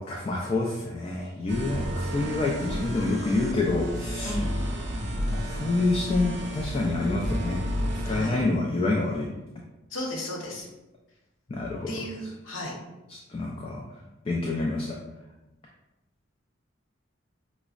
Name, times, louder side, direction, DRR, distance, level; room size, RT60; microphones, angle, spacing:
voice 1, 0.0-4.4 4.9-7.7 8.0-9.2 11.5-12.0 13.1-13.8 14.3-15.0, left 2 dB, 30° left, -2 dB, 0.3 m, -27 dB
sound 1, 1.5-8.3, equal, 60° right, 0.5 m, -31 dB
voice 2, 4.2-4.6 8.1-8.4 9.9-10.7 11.9-12.7, left 1 dB, 75° left, -3 dB, 0.8 m, -34 dB
4.8 x 2.0 x 2.4 m, 1.0 s
head